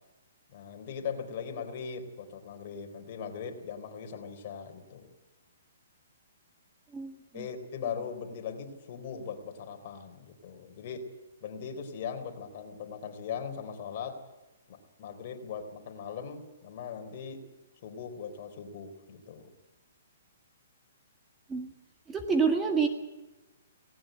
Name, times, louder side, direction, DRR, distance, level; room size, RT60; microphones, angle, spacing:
voice 1, 0.5-5.2 7.3-11.0 11.4-14.2 14.7-17.4 17.8-19.5, left 6 dB, 45° left, 5 dB, 3.8 m, -39 dB
voice 2, 6.9-7.5 21.5-21.7 22.1-22.9, right 5 dB, 10° right, 4 dB, 1.7 m, -28 dB
18.5 x 17.5 x 9.0 m, 1.1 s
hypercardioid pair, 155°, 0 cm